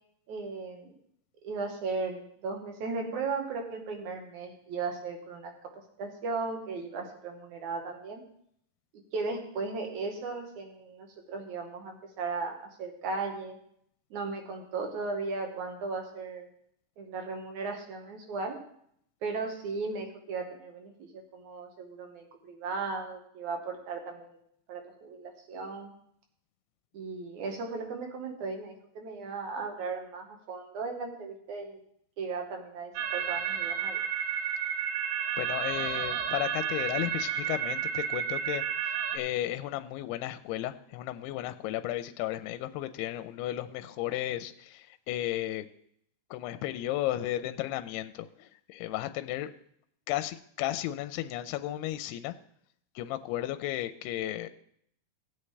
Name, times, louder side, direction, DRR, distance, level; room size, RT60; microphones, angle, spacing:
voice 1, 0.3-1.0 1.4-5.5 6.0-8.2 9.1-13.6 14.1-16.5 17.0-18.6 19.2-24.4 24.7-25.9 26.9-31.8 32.2-34.0, right 4 dB, 60° right, 3 dB, 2.3 m, -36 dB
sound 1, 33.0-39.2, right 8 dB, 75° right, 2.3 m, -31 dB
voice 2, 35.4-45.7 46.3-49.5 50.1-52.3 53.0-54.5, left 14 dB, 85° left, 10 dB, 2.5 m, -34 dB
17.5 x 8.4 x 3.3 m, 0.69 s
omnidirectional pair, 4.8 m